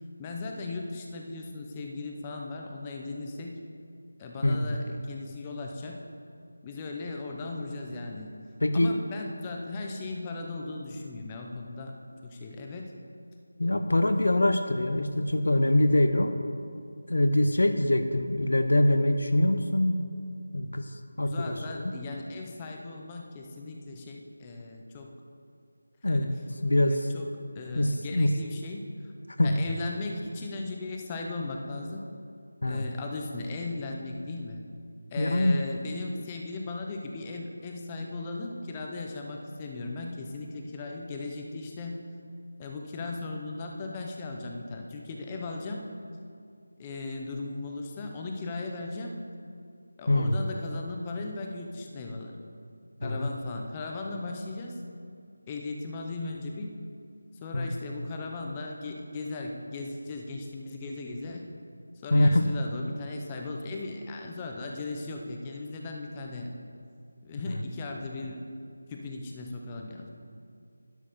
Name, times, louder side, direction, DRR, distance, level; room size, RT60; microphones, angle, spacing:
voice 1, 0.2-3.6 4.2-6.0 6.6-8.3 8.7-12.0 12.2-12.9 21.3-25.1 26.1-26.3 26.9-27.3 27.5-29.1 29.4-32.0 32.7-34.6 35.1-42.0 42.6-45.8 46.8-49.1 50.0-52.3 53.0-54.8 55.5-56.7 57.4-61.5 62.0-66.6 67.2-68.4 68.9-70.1, left 3 dB, 15° left, 1 dB, 0.7 m, -37 dB
voice 2, 4.4-4.7 8.6-8.9 13.6-16.4 17.1-20.0 20.5-21.8 26.0-26.3 26.6-27.1 27.7-28.4 29.4-29.6 32.6-32.8 35.2-35.6 50.1-50.3 53.0-53.3 57.5-57.7 62.1-62.5, left 1 dB, 80° left, 7 dB, 0.8 m, -24 dB
11.0 x 6.4 x 6.8 m, 2.4 s
figure-of-eight pair, 175°, 0 cm